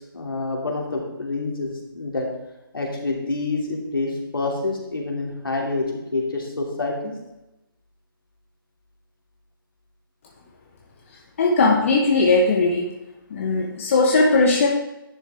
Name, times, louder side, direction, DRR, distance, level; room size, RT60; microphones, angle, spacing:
voice 1, 0.1-2.3 2.7-5.9 6.1-7.1, left 3 dB, 70° left, 0 dB, 2.5 m, -27 dB
voice 2, 11.4-12.9 13.3-14.7, left 3 dB, 35° left, -1 dB, 1.0 m, -18 dB
10.5 x 6.4 x 3.4 m, 0.96 s
figure-of-eight pair, 155°, 12 cm